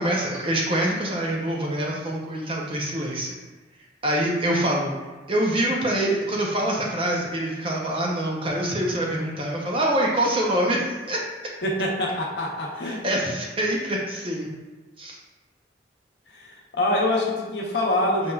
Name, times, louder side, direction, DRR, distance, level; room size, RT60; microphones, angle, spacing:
voice 1, 0.0-3.3 4.0-4.9 5.3-11.2 12.8-14.5 15.0-15.2 18.2-18.3, right 1 dB, 30° right, -2 dB, 0.6 m, -25 dB
voice 2, 11.6-13.0 16.3-18.3, left 1 dB, 65° left, -2 dB, 0.7 m, -25 dB
5.3 x 3.5 x 2.3 m, 1.2 s
head